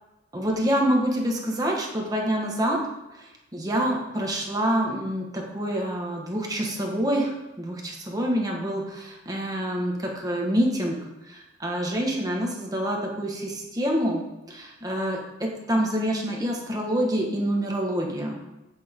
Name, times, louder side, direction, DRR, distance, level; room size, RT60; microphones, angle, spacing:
voice 1, 0.3-2.8 3.1-11.0 11.3-18.4, equal, 20° right, -1 dB, 1.6 m, -27 dB
10.5 x 8.8 x 3.8 m, 0.98 s
head